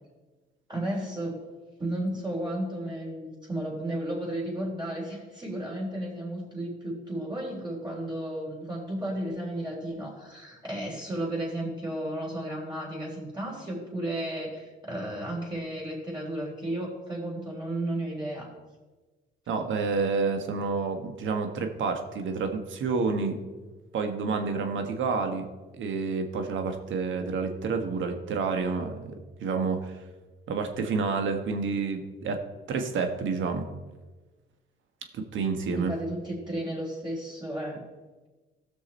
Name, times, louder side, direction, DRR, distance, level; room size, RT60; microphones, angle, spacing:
voice 1, 0.7-1.4 1.8-18.5 35.7-37.9, right 1 dB, 20° right, -4 dB, 3.9 m, -33 dB
voice 2, 19.5-23.4 23.9-25.5 25.7-29.1 29.4-30.0 30.5-32.4 32.7-33.6 35.1-35.9, right 4 dB, 75° right, 6 dB, 1.4 m, -29 dB
16.0 x 6.3 x 4.2 m, 1.2 s
cardioid pair, 90°, 20 cm